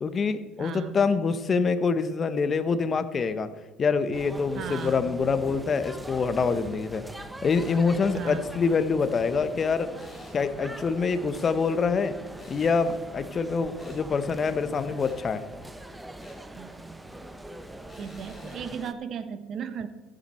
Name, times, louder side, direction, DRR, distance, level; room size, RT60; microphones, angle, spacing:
voice 1, 0.0-3.5 3.8-7.0 7.4-9.9 10.3-12.2 12.5-15.4 18.4-18.5, left 5 dB, 30° left, 12 dB, 0.9 m, -25 dB
voice 2, 0.6-1.0 4.5-5.0 8.1-8.4 16.5-17.1 18.0-19.9, right 7 dB, 45° right, 11 dB, 1.1 m, -36 dB
sound 1, 4.1-18.9, right 1 dB, 5° right, 0.7 m, -42 dB
sound 2, 4.7-5.0 7.5-7.8 9.9-10.4 12.4-12.8 13.8-14.0 15.0-15.2 16.2-16.4 17.9-18.6, left 2 dB, 10° left, 4.5 m, -52 dB
14.5 x 9.2 x 4.3 m, 1.2 s
supercardioid pair, 110°, 0 cm